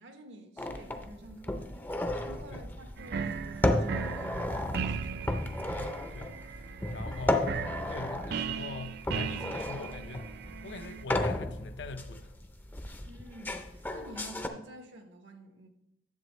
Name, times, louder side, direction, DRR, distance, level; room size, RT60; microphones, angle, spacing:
voice 1, 0.0-5.6 13.0-15.7, right 2 dB, 80° right, 1.1 m, -50 dB
sound 1, 0.6-14.5, left 1 dB, 10° left, 0.5 m, -34 dB
sound 2, 3.0-11.1, right 6 dB, 60° right, 0.4 m, -38 dB
voice 2, 5.8-6.4 6.9-7.5 7.9-10.4 10.6-12.3, left 3 dB, 70° left, 0.6 m, -43 dB
10.5 x 7.3 x 3.1 m
head